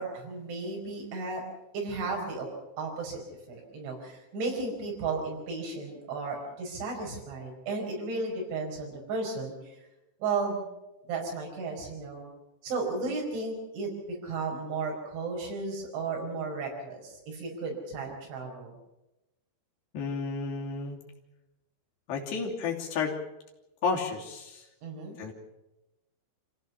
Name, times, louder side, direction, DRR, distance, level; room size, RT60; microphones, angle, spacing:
voice 1, 0.0-1.4 1.7-2.5 2.8-3.2 3.5-9.8 10.2-10.6 11.1-12.3 12.6-18.7 24.8-25.1, right 3 dB, 75° right, 0 dB, 7.3 m, -34 dB
voice 2, 19.9-21.0 22.1-23.1 23.8-24.7 25.2-25.3, left 5 dB, 65° left, -1 dB, 4.8 m, -31 dB
26.0 x 16.0 x 7.0 m, 0.96 s
omnidirectional pair, 5.4 m